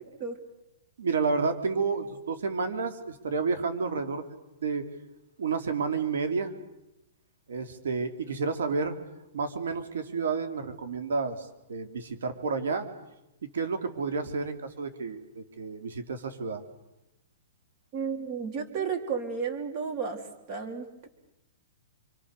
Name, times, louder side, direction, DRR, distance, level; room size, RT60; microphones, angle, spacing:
voice 1, 1.0-4.9 5.4-6.5 7.5-8.9 9.3-12.9 13.4-16.6, right 4 dB, 80° right, 7 dB, 3.5 m, -30 dB
voice 2, 17.9-20.2 20.5-21.1, right 6 dB, 30° right, 5 dB, 3.6 m, -32 dB
28.5 x 27.0 x 6.8 m, 0.91 s
hypercardioid pair, 160°, 0 cm